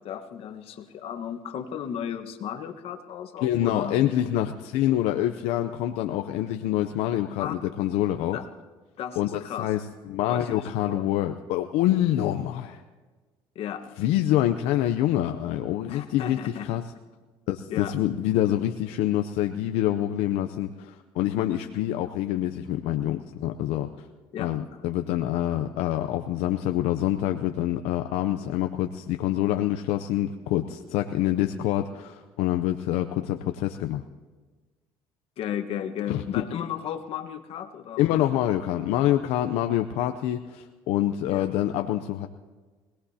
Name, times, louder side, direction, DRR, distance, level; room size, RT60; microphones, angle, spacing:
voice 1, 0.0-4.0 7.4-7.5 8.3-8.4 9.0-9.7 10.3-11.0 13.5-13.8 15.9-16.7 17.7-17.9 24.3-24.8 35.4-38.2 41.3-41.5, left 9 dB, 65° left, 5 dB, 1.4 m, -35 dB
voice 2, 3.4-8.4 9.2-12.8 14.0-16.8 17.5-24.1 24.4-34.0 36.1-36.2 38.0-42.3, left 12 dB, 85° left, 6 dB, 0.6 m, -26 dB
24.5 x 18.5 x 2.8 m, 1.3 s
cardioid pair, 100°, 11 cm